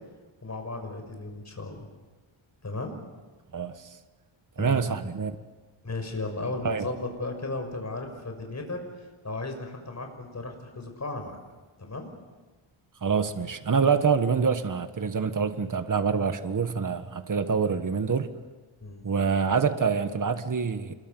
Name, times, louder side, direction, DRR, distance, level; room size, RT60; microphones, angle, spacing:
voice 1, 0.4-1.9 2.6-2.9 4.6-4.9 5.8-11.4 11.8-12.1 18.8-19.0, left 2 dB, 35° left, 6.1 m, -35 dB
voice 2, 3.5-4.0 4.6-5.4 6.6-6.9 13.0-18.3 19.0-20.9, right 5 dB, 40° right, 1.6 m, -26 dB
27.5 x 22.5 x 7.9 m
wide cardioid pair, 95°, 50 cm